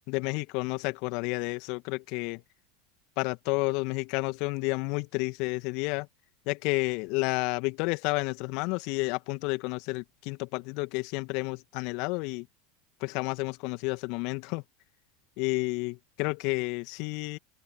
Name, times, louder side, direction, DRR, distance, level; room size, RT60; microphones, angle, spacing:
voice 1, 0.1-2.4 3.2-6.1 6.5-12.5 13.0-14.6 15.4-17.4, left 28 dB, 55° left, 2.3 m, -31 dB
open air
figure-of-eight pair, 80°, 0 cm